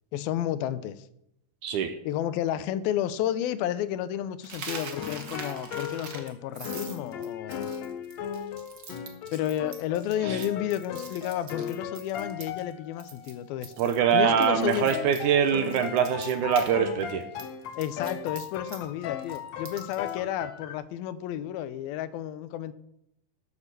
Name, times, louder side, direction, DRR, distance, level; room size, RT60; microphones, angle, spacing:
voice 1, 0.1-1.0 2.1-7.7 9.3-13.7 14.1-14.9 17.8-22.7, left 11 dB, 85° left, 14 dB, 2.6 m, -31 dB
voice 2, 1.6-2.0 10.3-10.4 13.8-17.2, right 8 dB, 75° right, 8 dB, 2.0 m, -24 dB
Coin (dropping), 4.4-12.7 13.0-13.3 13.6-16.7 17.0-20.1, right 5 dB, 50° right, 1.4 m, -43 dB
sound 1, 4.7-20.7, left 8 dB, 70° left, 1.7 m, -37 dB
11.5 x 8.8 x 6.7 m, 0.77 s
omnidirectional pair, 4.2 m